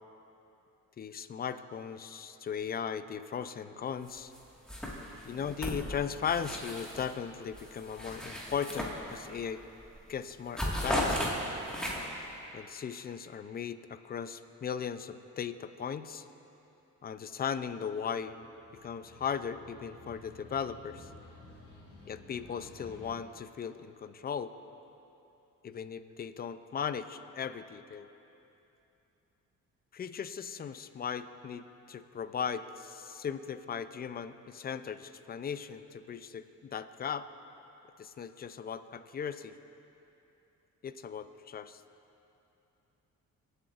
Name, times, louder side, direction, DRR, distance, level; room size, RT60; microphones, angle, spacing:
voice 1, 1.0-4.3 5.2-9.6 10.1-11.2 12.5-16.3 17.0-18.5 18.8-21.1 22.0-24.5 25.6-28.1 29.9-37.3 38.0-39.5 40.8-41.8, left 7 dB, 30° left, 11 dB, 0.5 m, -37 dB
sound 1, 4.1-4.4 4.7-7.1 7.5-9.4 9.8-10.0 10.3-12.2, equal, 5° left, 1.8 m, -35 dB
sound 2, 18.2-23.1, left 3 dB, 50° left, 2.5 m, -53 dB
22.5 x 8.0 x 2.5 m, 2.9 s
cardioid pair, 90°, 30 cm